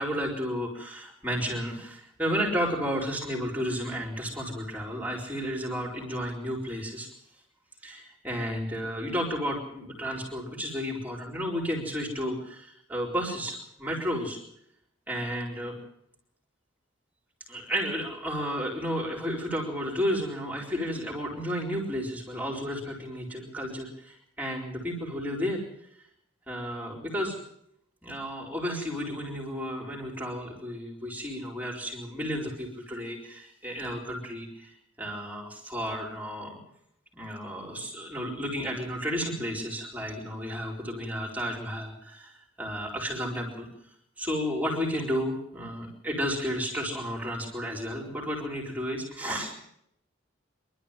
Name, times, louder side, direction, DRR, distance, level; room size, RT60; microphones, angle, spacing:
voice 1, 0.0-7.1 7.8-14.4 15.1-15.8 17.5-25.6 26.5-27.4 28.0-36.6 37.1-43.7 44.2-49.5, equal, 10° right, -1 dB, 4.4 m, -32 dB
25.0 x 12.5 x 9.1 m, 0.74 s
head